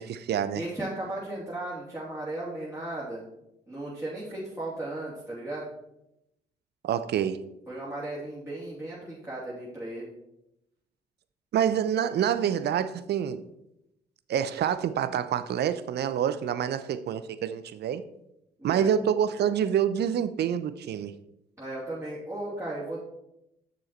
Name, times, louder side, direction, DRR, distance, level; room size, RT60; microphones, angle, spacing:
voice 1, 0.0-0.6 6.8-7.4 11.5-13.4 14.3-18.0 18.6-21.1, right 9 dB, 60° right, 0.6 m, -27 dB
voice 2, 0.5-3.3 3.7-5.7 7.7-10.1 18.6-18.9 21.6-23.0, right 1 dB, 15° right, 3.0 m, -36 dB
7.2 x 6.3 x 4.4 m
hypercardioid pair, 50°, 19 cm